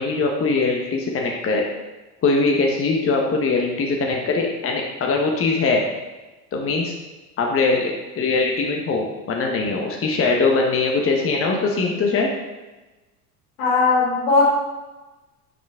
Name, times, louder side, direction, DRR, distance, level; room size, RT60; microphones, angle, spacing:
voice 1, 0.0-1.6 2.2-5.8 6.5-6.9 7.4-12.3, left 3 dB, 30° left, 1 dB, 1.1 m, -21 dB
voice 2, 13.6-14.4, left 4 dB, 70° left, -2 dB, 2.7 m, -18 dB
9.1 x 5.2 x 3.6 m, 1.1 s
hypercardioid pair, 80°, 48 cm